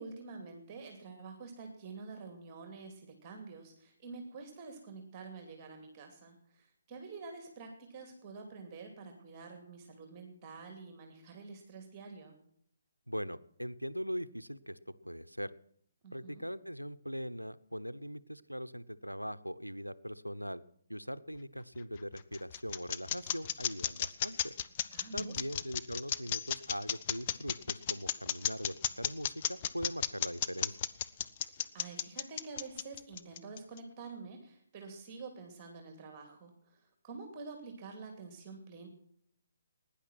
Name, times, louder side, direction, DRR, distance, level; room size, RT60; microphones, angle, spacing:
voice 1, 0.0-12.4 16.0-16.4 24.9-25.6 31.5-38.9, right 4 dB, 25° right, 4 dB, 2.5 m, -48 dB
voice 2, 13.1-14.8 15.0-15.5 16.1-20.6 20.9-24.5 25.1-30.8, equal, 90° right, 14 dB, 0.7 m, -41 dB
sound 1, 21.8-33.8, left 10 dB, 30° left, 0.7 m, -34 dB
17.5 x 10.0 x 6.1 m, 0.67 s
figure-of-eight pair, 135°, 0 cm